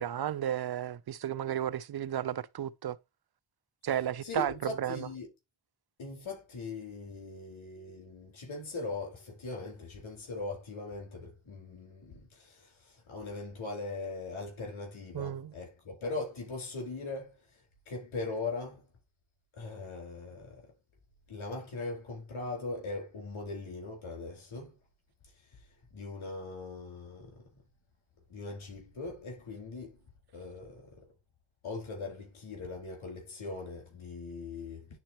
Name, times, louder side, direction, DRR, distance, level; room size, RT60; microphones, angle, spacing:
voice 1, 0.0-3.0 3.8-5.1 15.1-15.5, right 10 dB, 55° right, 0.6 m, -33 dB
voice 2, 4.2-5.3 6.0-17.4 17.9-18.8 19.5-20.6 21.3-24.7 25.9-27.4 28.3-30.0 30.3-31.0 31.6-34.9, left 3 dB, 75° left, 4.4 m, -40 dB
10.5 x 4.3 x 2.9 m
cardioid pair, 75°, 48 cm